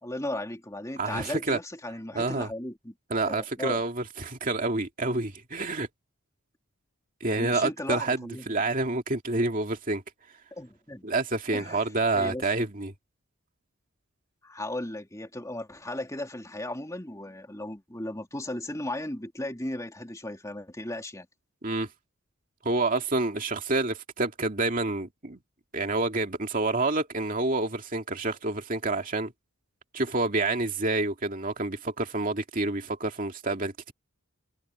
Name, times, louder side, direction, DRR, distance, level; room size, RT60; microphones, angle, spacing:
voice 1, 0.0-2.9 3.2-3.8 7.4-8.6 10.5-11.1 11.5-11.8 12.1-12.4 14.4-21.3, left 1 dB, 15° left, 3.1 m, -36 dB
voice 2, 1.0-1.6 2.1-2.5 3.1-5.9 7.2-10.0 11.0-12.9 21.6-21.9 22.6-25.4 25.7-29.3 29.9-33.9, right 2 dB, 40° right, 2.4 m, -28 dB
head